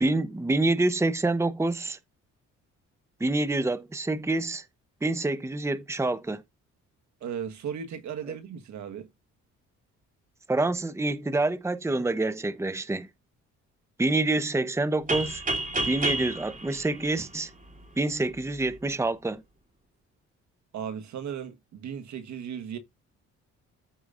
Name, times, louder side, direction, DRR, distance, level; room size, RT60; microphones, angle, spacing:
voice 1, 0.0-2.0 3.2-4.6 5.0-6.4 10.5-13.1 14.0-15.4 15.9-17.5 18.0-19.4, right 2 dB, 10° right, 0.9 m, -27 dB
voice 2, 7.2-9.1 20.7-22.8, right 8 dB, 70° right, 1.6 m, -36 dB
sound 1, 15.1-17.8, right 2 dB, 25° right, 3.2 m, -30 dB
14.0 x 4.9 x 2.6 m
cardioid pair, 90°, 30 cm